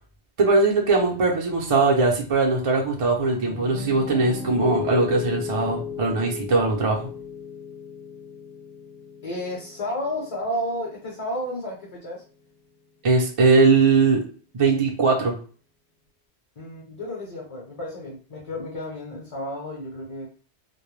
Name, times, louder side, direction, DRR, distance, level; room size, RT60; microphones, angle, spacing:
voice 1, 0.4-7.0 13.0-14.2 14.5-15.3, right 3 dB, 40° right, -2 dB, 0.5 m, -20 dB
Piano, 3.2-11.3, left 7 dB, 70° left, 0.8 m, -36 dB
voice 2, 9.2-12.2 16.6-20.3, left 1 dB, 35° left, -3 dB, 0.7 m, -32 dB
2.2 x 2.1 x 3.1 m, 0.40 s
omnidirectional pair, 1.1 m